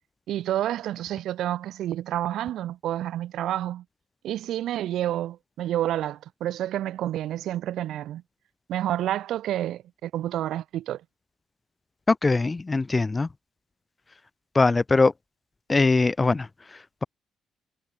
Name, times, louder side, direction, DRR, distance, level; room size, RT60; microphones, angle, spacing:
voice 1, 0.3-3.8 4.2-8.2 8.7-11.0, right 12 dB, 80° right, 2.1 m, -29 dB
voice 2, 12.1-13.3 14.5-15.1 15.7-16.5, left 3 dB, 25° left, 0.6 m, -21 dB
cardioid pair, 90°, 0 cm